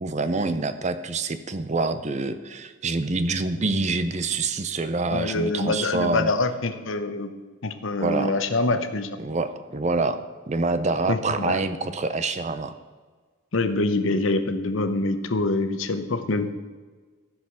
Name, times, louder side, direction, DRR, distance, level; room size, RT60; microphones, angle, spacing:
voice 1, 0.0-6.3 8.0-8.4 9.2-10.2 10.5-12.7, right 3 dB, 35° right, 11 dB, 0.6 m, -26 dB
voice 2, 5.1-7.3 7.6-9.2 11.1-11.6 13.5-16.6, left 2 dB, 70° left, 9 dB, 0.8 m, -25 dB
14.5 x 4.9 x 6.3 m, 1.4 s
head